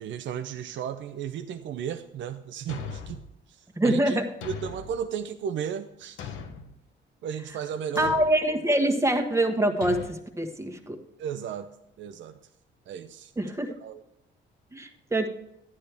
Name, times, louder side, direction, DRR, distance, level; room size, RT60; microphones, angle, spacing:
voice 1, 0.0-6.3 7.2-8.1 11.2-11.7 12.0-12.4 12.9-13.3 13.8-14.0, right 8 dB, 70° right, 7 dB, 0.6 m, -35 dB
Thump thud, 2.7-3.3 4.4-5.0 6.2-6.7 7.9-8.4 9.8-10.1, left 6 dB, 80° left, 1.1 m, -38 dB
voice 2, 3.8-4.2 8.0-11.0 13.4-13.7 14.7-15.3, right 1 dB, 15° right, 5 dB, 1.4 m, -25 dB
12.0 x 9.7 x 3.5 m, 0.83 s
cardioid pair, 90°, 20 cm